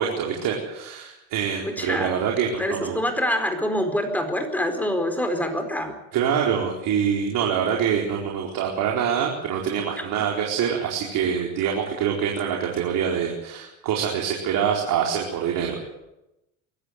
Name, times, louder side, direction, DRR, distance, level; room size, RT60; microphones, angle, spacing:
voice 1, 0.0-3.0 6.1-15.9, right 8 dB, 60° right, -1 dB, 4.5 m, -25 dB
voice 2, 1.6-2.2 2.6-5.9 10.0-10.1, equal, 5° left, 6 dB, 4.5 m, -25 dB
23.0 x 13.5 x 9.5 m, 0.91 s
supercardioid pair, 115°, 38 cm